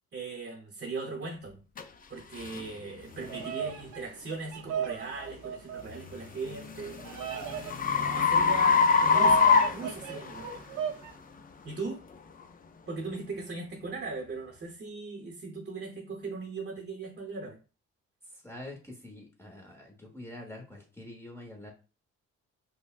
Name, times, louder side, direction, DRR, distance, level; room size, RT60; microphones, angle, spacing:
voice 1, 0.1-1.6 2.1-7.0 7.9-10.6 11.6-12.0 12.9-17.6, right 3 dB, 35° right, 0 dB, 0.8 m, -39 dB
sound 1, 1.8-1.9 2.4-2.6 3.2-3.5 6.1-10.6, left 5 dB, 30° left, 0.5 m, -24 dB
Bird vocalization bird call bird song, 3.1-11.1, right 8 dB, 75° right, 0.7 m, -38 dB
voice 2, 18.4-21.7, left 1 dB, 10° left, -1 dB, 0.9 m, -45 dB
5.4 x 2.1 x 2.4 m, 0.34 s
cardioid pair, 90°, 30 cm